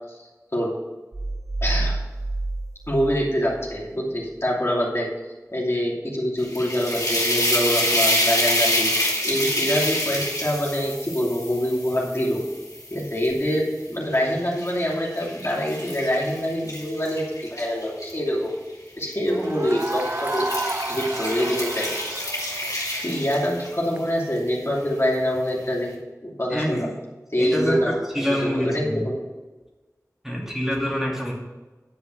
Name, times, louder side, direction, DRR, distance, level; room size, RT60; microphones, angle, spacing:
sound 1, 1.1-3.9, right 2 dB, 65° right, 0.7 m, -29 dB
voice 1, 1.6-2.0 2.9-5.1 5.5-8.9 9.2-12.4 12.9-18.5 18.9-21.9 23.0-25.9 26.2-26.9 27.3-27.9 28.4-29.2, equal, 45° left, -4 dB, 2.8 m, -25 dB
sound 2, 6.4-13.6 14.1-18.1 19.0-19.3 19.7-23.8, left 1 dB, 75° left, 2.7 m, -27 dB
sound 3, 19.3-24.0, right 2 dB, 35° right, 0.4 m, -32 dB
voice 2, 26.5-26.9 27.4-29.0 30.2-31.3, equal, 5° right, -3 dB, 2.4 m, -26 dB
10.5 x 5.5 x 6.3 m, 1.2 s
wide cardioid pair, 45°, 6 cm